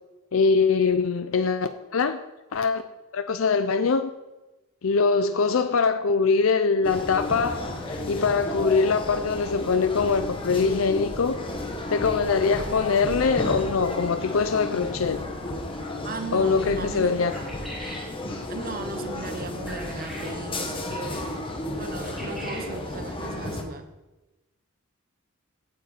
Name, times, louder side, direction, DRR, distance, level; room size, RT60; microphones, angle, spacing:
voice 1, 0.3-2.2 2.5-2.8 3.1-4.1 4.8-11.5 11.9-15.2 16.3-17.3, left 5 dB, 70° left, 0.5 m, -23 dB
sound 1, 6.8-23.6, left 1 dB, 25° left, 1.3 m, -33 dB
voice 2, 16.0-17.2 18.5-21.4 21.7-23.9, right 3 dB, 45° right, 0.9 m, -37 dB
sound 2, 17.3-18.1 19.7-20.4 22.0-22.7, equal, ahead, 3.7 m, -40 dB
9.1 x 6.7 x 8.3 m
head